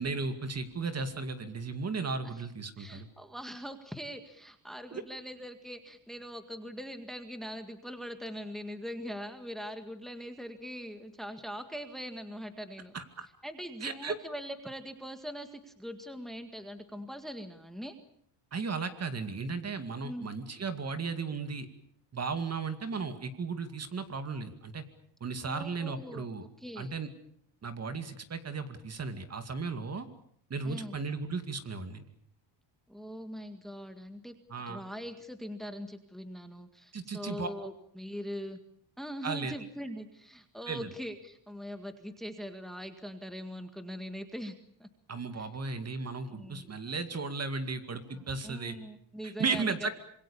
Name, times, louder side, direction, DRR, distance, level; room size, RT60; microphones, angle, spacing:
voice 1, 0.0-3.1 4.9-5.0 12.9-13.3 13.8-14.2 18.5-21.7 22.1-24.8 25.2-26.4 26.8-27.1 27.6-30.1 30.5-32.1 34.5-34.8 36.9-37.5 39.2-39.5 40.7-40.9 45.1-48.8 49.2-49.9, right 4 dB, 35° right, 9 dB, 2.3 m, -35 dB
voice 2, 2.8-12.9 13.4-18.0 20.0-20.3 25.4-26.3 26.6-26.9 30.6-31.0 32.9-34.4 34.7-38.6 39.0-44.9 45.4-45.5 46.3-46.8 48.1-49.9, equal, ahead, 8 dB, 1.9 m, -42 dB
26.5 x 22.5 x 7.0 m, 0.66 s
cardioid pair, 120°, 45 cm